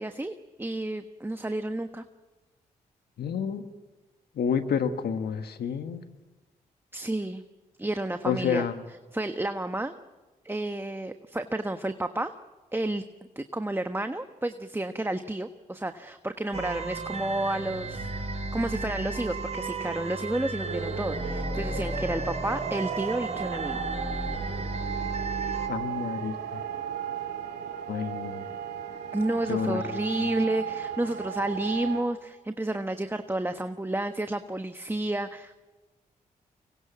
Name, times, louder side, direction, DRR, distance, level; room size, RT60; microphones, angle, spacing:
voice 1, 0.0-2.0 6.9-7.4 7.8-8.7 9.1-9.9 10.4-12.3 12.7-13.0 13.3-23.8 29.1-35.7, right 1 dB, 15° right, 8 dB, 1.2 m, -31 dB
voice 2, 3.2-3.6 4.3-6.0 8.3-8.8 25.7-26.6 27.9-28.4 29.5-30.3, left 7 dB, 75° left, 8 dB, 1.6 m, -29 dB
sound 1, 16.5-25.7, right 2 dB, 40° right, 5.5 m, -34 dB
sound 2, 20.6-32.0, right 8 dB, 85° right, 2.5 m, -35 dB
24.5 x 21.5 x 7.4 m, 1.2 s
supercardioid pair, 40°, 17 cm